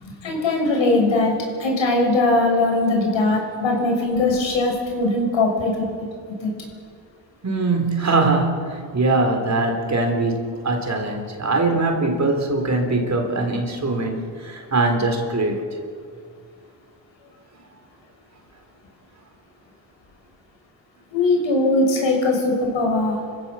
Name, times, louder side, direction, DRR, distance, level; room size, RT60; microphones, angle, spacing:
voice 1, 0.2-1.3 1.6-5.9 6.4-6.5 21.1-23.2, left 2 dB, 70° left, 1 dB, 7.0 m, -20 dB
voice 2, 7.4-15.6, right 2 dB, 35° right, 4 dB, 4.0 m, -22 dB
28.5 x 15.5 x 7.3 m, 2.2 s
cardioid pair, 95°, 47 cm